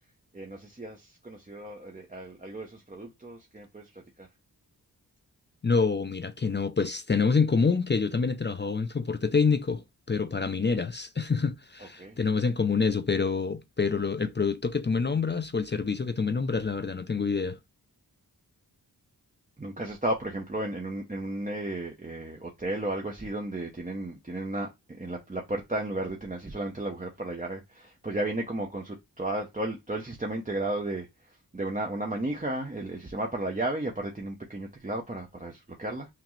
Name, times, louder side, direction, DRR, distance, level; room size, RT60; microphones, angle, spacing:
voice 1, 0.3-4.3 12.0-12.2 19.6-31.1 31.5-36.1, right 1 dB, 20° right, 0.7 m, -34 dB
voice 2, 5.6-17.6, left 5 dB, 30° left, 0.4 m, -27 dB
5.8 x 2.0 x 3.1 m
wide cardioid pair, 55°, 40 cm